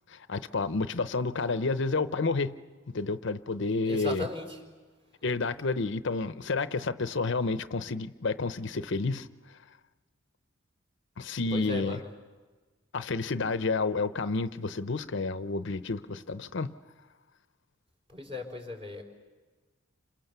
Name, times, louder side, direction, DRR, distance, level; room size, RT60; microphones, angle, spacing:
voice 1, 0.1-2.6 2.9-4.3 5.2-9.3 11.2-12.0 12.9-16.7, left 3 dB, 65° left, 0.7 m, -30 dB
voice 2, 3.9-4.6 11.5-12.1 18.1-19.0, left 3 dB, 30° right, 4.4 m, -36 dB
30.0 x 27.0 x 6.8 m
head